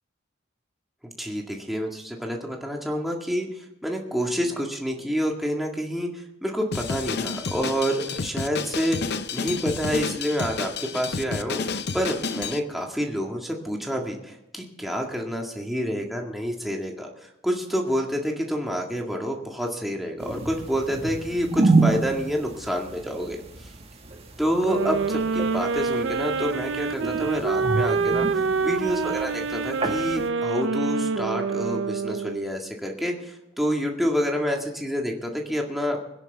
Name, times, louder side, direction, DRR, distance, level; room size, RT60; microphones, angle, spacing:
voice 1, 1.0-3.5 3.8-23.4 24.4-36.1, equal, ahead, 0 dB, 2.0 m, -28 dB
Drum kit, 6.7-12.6, left 5 dB, 55° left, 0.7 m, -30 dB
sound 1, 20.2-30.3, right 3 dB, 30° right, 1.8 m, -29 dB
Sax Alto - G minor, 24.6-32.6, right 5 dB, 65° right, 0.6 m, -26 dB
21.0 x 10.5 x 3.5 m, 0.93 s
head